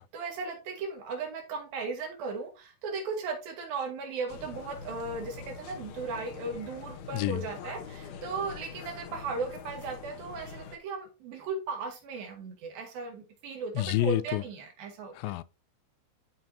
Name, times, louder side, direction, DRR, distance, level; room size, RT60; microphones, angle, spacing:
voice 1, 0.1-15.4, right 4 dB, 90° right, 3.7 m, -36 dB
sound 1, 4.3-10.8, left 6 dB, 70° left, 2.4 m, -44 dB
voice 2, 7.1-7.4 13.8-14.4 15.1-15.4, left 14 dB, 90° left, 2.3 m, -28 dB
13.0 x 4.6 x 2.7 m
omnidirectional pair, 4.0 m